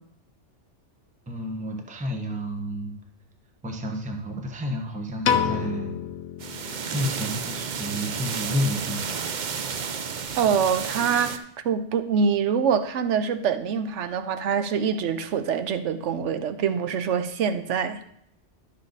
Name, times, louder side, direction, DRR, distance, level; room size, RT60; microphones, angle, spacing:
voice 1, 1.3-2.9 3.6-6.0 6.9-9.1, equal, 5° right, 2 dB, 0.9 m, -30 dB
Piano, 5.2-7.5, left 8 dB, 70° left, 1.0 m, -28 dB
sound 1, 6.4-11.4, right 6 dB, 50° right, 0.6 m, -32 dB
voice 2, 10.4-18.0, right 7 dB, 75° right, 10 dB, 1.1 m, -25 dB
12.0 x 6.5 x 4.0 m, 0.74 s
omnidirectional pair, 1.3 m